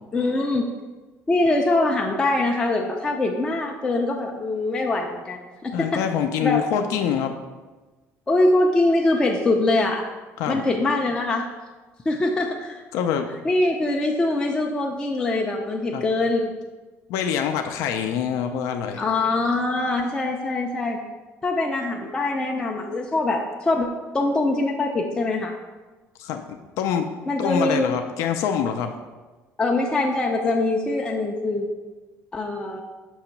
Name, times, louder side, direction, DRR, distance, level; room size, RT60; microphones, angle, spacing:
voice 1, 0.1-0.7 1.3-6.0 6.4-6.7 8.3-10.1 10.5-11.5 12.1-12.8 13.4-16.6 19.0-21.0 21.4-23.9 24.1-25.5 27.3-27.9 29.6-31.7 32.3-32.8, left 2 dB, 15° left, 0 dB, 0.4 m, -23 dB
voice 2, 5.7-7.3 10.4-10.6 12.9-13.3 15.9-16.0 17.1-19.0 26.2-26.4 26.8-27.1 27.4-28.9, left 8 dB, 80° left, 6 dB, 0.4 m, -25 dB
6.2 x 2.9 x 5.7 m, 1.3 s
cardioid pair, 165°, 5 cm